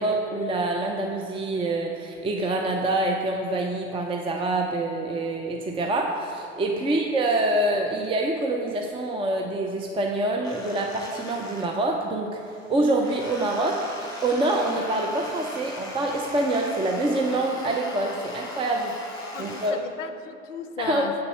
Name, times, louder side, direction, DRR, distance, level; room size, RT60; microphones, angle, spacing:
voice 1, 0.0-12.4 12.7-13.9 14.2-19.0 19.4-19.8 20.8-21.0, right 2 dB, 15° right, 1 dB, 0.5 m, -26 dB
sound 1, 10.4-12.1 12.4-19.7, left 1 dB, 10° left, 1.3 m, -40 dB
voice 2, 19.3-21.1, left 8 dB, 80° left, 10 dB, 0.5 m, -36 dB
7.7 x 4.0 x 5.5 m, 2.5 s
figure-of-eight pair, 70°, 37 cm